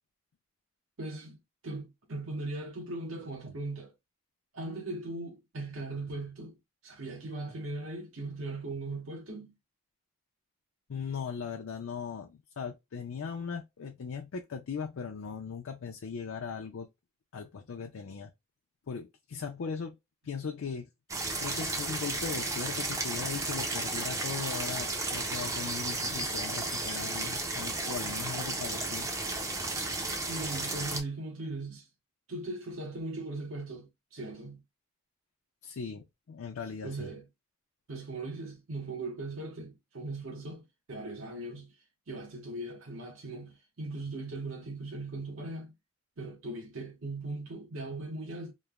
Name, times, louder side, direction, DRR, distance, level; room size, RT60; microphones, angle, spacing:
voice 1, 1.0-3.9 4.5-6.6 6.8-9.5 30.3-31.9 32.3-34.6 36.8-37.2 37.9-41.7 42.1-45.7 46.2-48.5, right 2 dB, 65° right, 0.8 m, -39 dB
voice 2, 10.9-16.9 17.3-18.3 18.9-20.0 20.2-20.9 21.4-29.1 35.6-37.1, left 6 dB, 70° left, 0.4 m, -39 dB
sound 1, 21.1-31.0, right 2 dB, 15° right, 0.4 m, -33 dB
3.1 x 2.0 x 2.2 m
head